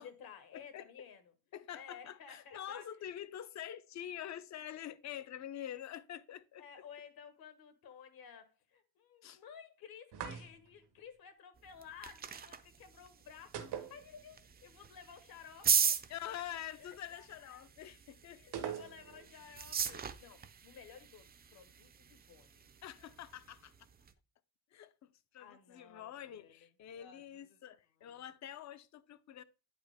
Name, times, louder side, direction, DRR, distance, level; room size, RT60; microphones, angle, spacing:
voice 1, 0.0-1.3 1.7-2.8 5.5-5.8 6.6-16.0 16.8-17.6 18.3-22.7 25.4-26.5 26.9-27.7 28.0-28.2, left 7 dB, 70° left, 1.4 m, -55 dB
voice 2, 0.5-0.9 1.5-6.6 9.2-9.4 16.1-18.8 22.8-23.7 24.7-29.4, left 11 dB, 45° left, 0.6 m, -46 dB
sound 1, 10.1-10.8 13.5-14.6 14.9-15.0 18.5-19.3, right 9 dB, 85° right, 1.2 m, -42 dB
sound 2, 11.6-24.1, right 7 dB, 25° right, 0.4 m, -39 dB
9.2 x 5.0 x 3.4 m
cardioid pair, 155°, 38 cm